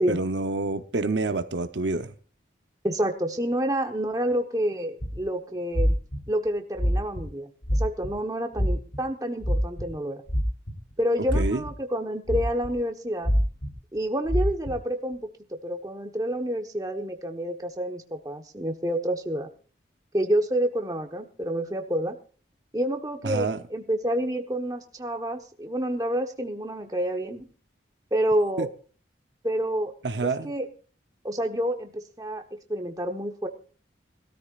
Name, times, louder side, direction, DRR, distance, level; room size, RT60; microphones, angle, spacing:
voice 1, 0.0-2.1 11.3-11.6 23.2-23.6 28.6-28.7 30.0-30.5, right 3 dB, 75° right, 0.9 m, -27 dB
voice 2, 2.8-5.9 6.3-10.2 11.0-13.3 13.9-19.5 20.1-22.2 22.7-27.5 28.1-28.7 29.4-29.9 30.2-30.7 31.2-33.5, right 1 dB, 20° right, 1.2 m, -28 dB
sound 1, 5.0-5.2 5.7-6.2 6.8-7.2 7.6-8.1 8.5-9.0 9.4-9.9 10.3-10.9 11.3-11.7 12.3-12.7 13.2-13.7 14.3-14.7, equal, 70° left, 3.9 m, -24 dB
21.5 x 13.5 x 2.5 m
head